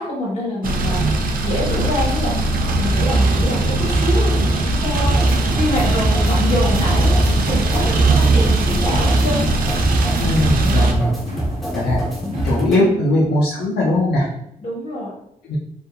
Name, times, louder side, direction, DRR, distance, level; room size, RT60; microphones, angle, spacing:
voice 1, 0.0-7.1 7.4-9.8 14.6-15.1, equal, 45° left, -4 dB, 1.2 m, -26 dB
sound 1, 0.6-10.9, right 2 dB, 65° right, 0.4 m, -18 dB
sound 2, 2.0-12.6, right 1 dB, 45° right, 0.8 m, -31 dB
sound 3, 5.0-12.8, equal, ahead, 0.9 m, -26 dB
voice 2, 10.2-11.1 11.7-12.0 12.4-14.3 15.5-15.6, left 1 dB, 85° left, -4 dB, 0.5 m, -19 dB
2.6 x 2.4 x 2.3 m, 0.78 s
cardioid pair, 65°, 16 cm